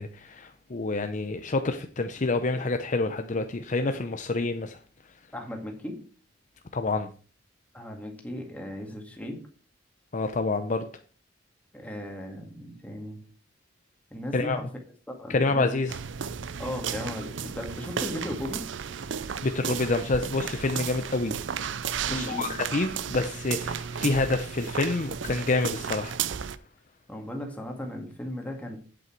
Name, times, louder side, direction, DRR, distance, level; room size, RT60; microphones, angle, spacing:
voice 1, 0.0-4.8 6.7-7.1 10.1-10.9 14.3-14.6 15.3-16.0 19.4-21.4 22.1-26.1, left 3 dB, 40° left, 0.7 m, -27 dB
voice 2, 5.3-6.0 7.7-9.4 11.7-13.2 14.1-14.6 15.1-15.8 16.6-18.6 22.1-22.5 27.1-28.8, equal, 10° left, 2.0 m, -36 dB
sound 1, 15.9-26.6, right 7 dB, 65° right, 0.5 m, -34 dB
8.6 x 7.9 x 4.6 m
head